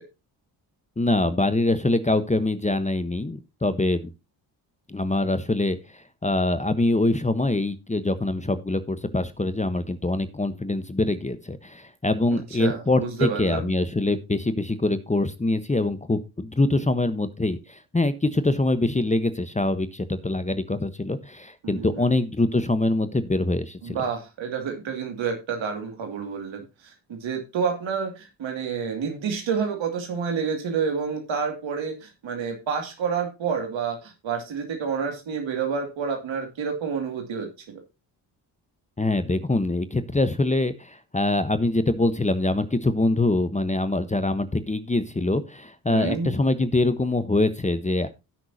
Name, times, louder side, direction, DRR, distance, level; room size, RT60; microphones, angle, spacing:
voice 1, 1.0-4.1 4.9-24.0 39.0-48.1, left 2 dB, 15° left, 11 dB, 1.1 m, -24 dB
voice 2, 12.3-13.7 21.6-22.0 23.8-37.8 45.9-46.3, right 6 dB, 65° right, 3 dB, 2.5 m, -29 dB
17.0 x 6.1 x 2.8 m, 0.26 s
supercardioid pair, 55°, 49 cm